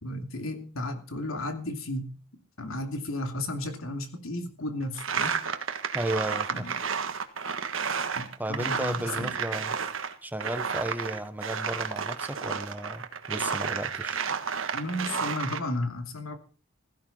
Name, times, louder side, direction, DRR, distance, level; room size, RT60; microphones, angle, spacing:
voice 1, 0.0-2.1 2.6-5.4 6.5-6.7 8.1-9.4 14.7-16.4, left 1 dB, 80° left, 2.8 m, -34 dB
sound 1, 5.0-10.1 10.4-15.6, right 6 dB, 65° right, 1.5 m, -31 dB
voice 2, 5.9-6.7 8.4-9.8 10.2-14.2, right 1 dB, 10° right, 1.0 m, -34 dB
16.0 x 15.5 x 4.3 m
head